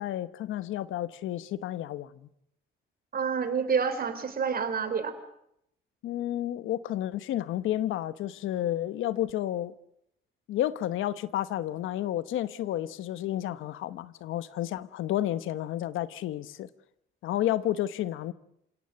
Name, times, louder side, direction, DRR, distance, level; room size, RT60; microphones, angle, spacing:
voice 1, 0.0-2.1 6.0-9.7 10.5-16.7 17.2-18.3, left 13 dB, 85° left, 1.1 m, -31 dB
voice 2, 3.1-5.1, right 6 dB, 50° right, 3.7 m, -28 dB
27.5 x 18.0 x 7.6 m
cardioid pair, 90°, 20 cm